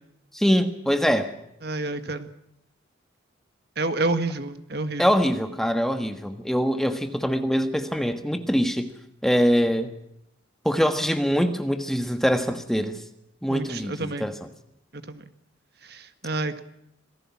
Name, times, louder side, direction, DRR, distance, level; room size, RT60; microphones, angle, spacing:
voice 1, 0.3-1.3 5.0-8.9 9.2-9.9 10.6-13.0 13.4-14.3, equal, ahead, 7 dB, 1.4 m, -23 dB
voice 2, 1.6-2.3 3.8-5.2 13.5-14.3 14.9-15.2 15.8-16.6, right 2 dB, 55° right, 9 dB, 1.7 m, -29 dB
27.0 x 19.0 x 6.1 m, 0.79 s
head